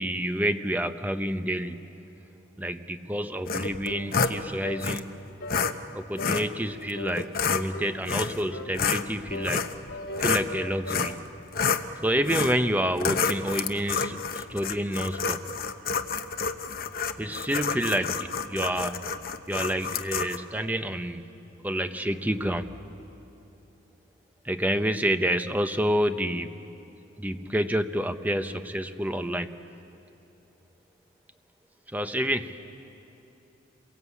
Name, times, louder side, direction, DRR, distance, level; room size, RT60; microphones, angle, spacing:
voice 1, 0.0-1.9 2.6-5.2 5.9-9.7 10.2-11.2 12.0-15.4 17.2-19.1 19.5-21.3 21.6-22.7 24.4-26.6 27.2-29.5 31.9-32.6, equal, 10° right, 8 dB, 0.8 m, -28 dB
sound 1, 3.5-4.4 4.8-5.0 5.5-5.7 6.2-6.5 7.2-7.6 8.1-8.4 8.7-10.5 10.9-11.2 11.5-11.9 12.3-12.6 13.0-20.4, left 5 dB, 50° left, 0.8 m, -29 dB
sound 2, 3.8-4.1 4.6-4.9 5.4-5.6 6.2-6.4 6.9-7.2 7.7-8.0 8.5-8.8 9.3-11.1, left 1 dB, 70° left, 2.8 m, -38 dB
sound 3, 8.2-19.8, equal, 80° right, 5.4 m, -54 dB
28.0 x 22.5 x 8.4 m, 2.8 s
head